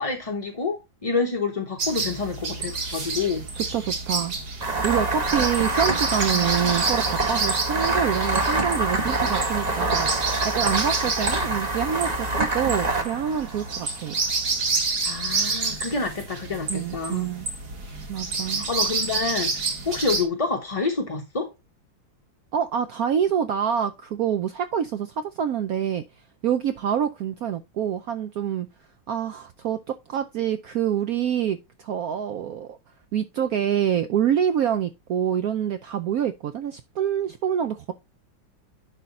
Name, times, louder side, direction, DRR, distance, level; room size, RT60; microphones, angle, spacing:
voice 1, 0.0-3.4 11.3-11.5 15.0-17.2 18.5-19.5 19.8-21.5, left 4 dB, 30° left, 0.7 m, -28 dB
sound 1, 1.8-20.2, right 4 dB, 55° right, 2.5 m, -29 dB
voice 2, 3.5-4.3 4.8-14.2 16.7-17.5 18.1-18.6 22.5-26.0 26.4-28.7 29.1-32.8 33.1-37.9, right 9 dB, 75° right, 0.8 m, -26 dB
sound 2, 4.6-14.0, right 2 dB, 25° right, 1.0 m, -26 dB
11.0 x 4.0 x 4.0 m
omnidirectional pair, 2.2 m